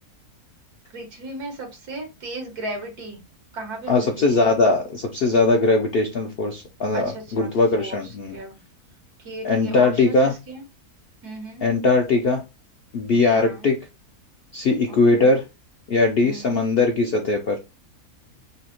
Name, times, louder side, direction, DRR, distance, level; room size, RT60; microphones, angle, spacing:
voice 1, 0.9-3.2 3.5-4.4 6.9-7.5 7.8-8.6 9.3-10.6 11.2-11.7 13.3-13.7 14.9-15.3 16.2-16.6, right 2 dB, 90° right, 3 dB, 1.8 m, -36 dB
voice 2, 3.9-8.4 9.4-10.3 11.6-12.4 12.9-13.8 14.5-15.4 15.9-17.6, left 3 dB, 65° left, 3 dB, 0.5 m, -20 dB
5.4 x 2.1 x 2.9 m, 0.26 s
omnidirectional pair, 1.6 m